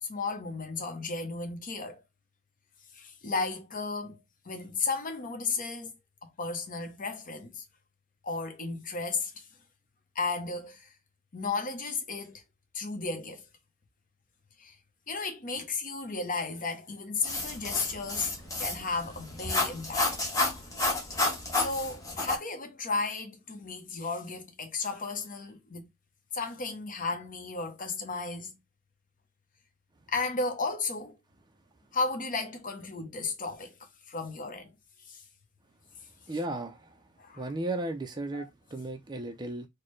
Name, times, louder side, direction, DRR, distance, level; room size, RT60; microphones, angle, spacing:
voice 1, 0.0-2.0 2.9-5.9 6.2-7.6 8.2-9.5 10.1-10.9 11.3-12.4 12.7-13.4 14.6-14.8 15.1-18.3 18.6-20.1 21.5-25.9 26.3-28.6 30.1-31.2 31.9-34.7 35.1-35.2 37.2-37.5 38.3-38.5, left 4 dB, 40° left, 0.8 m, -34 dB
sound 1, 17.2-22.4, left 2 dB, 15° left, 1.1 m, -30 dB
voice 2, 36.3-36.8 37.4-39.7, right 2 dB, 20° right, 0.5 m, -35 dB
4.4 x 2.2 x 3.2 m
head